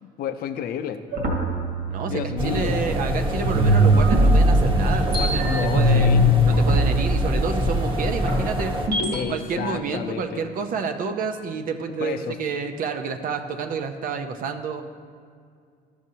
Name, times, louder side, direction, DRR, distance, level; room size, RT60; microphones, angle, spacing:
voice 1, 0.0-1.0 2.1-2.8 5.5-6.3 9.1-10.4 12.0-12.4, left 9 dB, 65° left, 8 dB, 0.5 m, -31 dB
sound 1, 1.1-3.1 3.4-9.2, equal, 70° right, 1.8 m, -21 dB
voice 2, 1.9-6.2 6.4-8.7 9.3-14.8, right 5 dB, 55° right, 6 dB, 0.7 m, -29 dB
sound 2, 2.4-8.9, equal, 30° right, 1.2 m, -25 dB
13.5 x 6.3 x 2.8 m, 2.2 s
cardioid pair, 110°, 17 cm